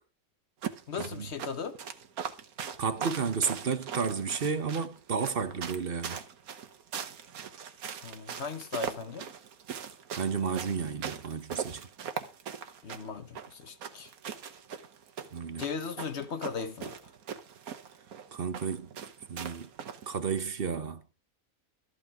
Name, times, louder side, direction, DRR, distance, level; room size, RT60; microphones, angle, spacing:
sound 1, 0.6-20.2, right 7 dB, 85° right, 1.5 m, -40 dB
voice 1, 0.9-1.8 8.0-9.3 12.8-14.1 15.6-17.0, left 5 dB, 50° left, 1.3 m, -37 dB
voice 2, 2.8-6.2 10.2-11.9 15.3-15.6 18.3-18.9 19.3-19.7 20.1-21.0, right 6 dB, 45° right, 1.1 m, -32 dB
13.0 x 8.8 x 4.8 m
omnidirectional pair, 1.5 m